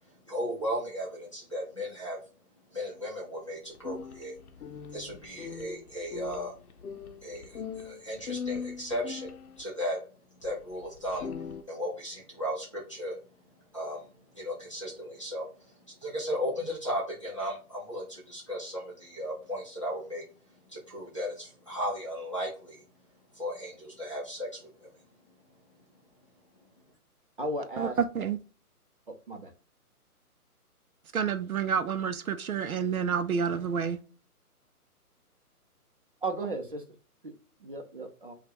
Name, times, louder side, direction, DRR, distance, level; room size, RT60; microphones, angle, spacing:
voice 1, 0.2-2.2 2.7-4.4 4.9-6.5 7.2-10.0 10.3-11.3 11.7-13.2 13.7-20.2 20.7-22.8 23.3-24.9, equal, 20° left, 0.8 m, -36 dB
sound 1, 3.7-9.6 10.4-10.5 10.9-11.6, left 6 dB, 70° left, 0.7 m, -40 dB
voice 2, 27.4-28.0 29.3-29.5 36.2-36.8 37.2-37.3 37.6-38.3, right 2 dB, 35° right, 0.8 m, -34 dB
voice 3, 31.1-34.0, right 7 dB, 65° right, 0.7 m, -29 dB
5.2 x 2.4 x 2.9 m
hypercardioid pair, 175°, 45 cm